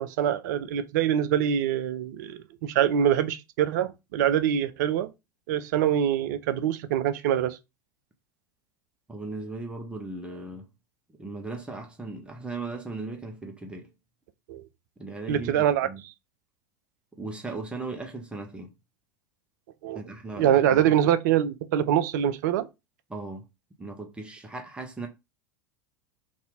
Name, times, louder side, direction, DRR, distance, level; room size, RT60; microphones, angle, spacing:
voice 1, 0.0-5.1 5.5-7.6 14.5-14.6 15.3-16.1 19.8-20.0 20.4-22.7, right 10 dB, 55° right, 0.5 m, -24 dB
voice 2, 9.1-10.7 11.2-13.9 15.0-16.0 17.1-18.7 19.9-20.8 23.1-23.5 23.8-25.1, right 3 dB, 10° right, 0.7 m, -37 dB
2.8 x 2.5 x 3.4 m
figure-of-eight pair, 80°, 11 cm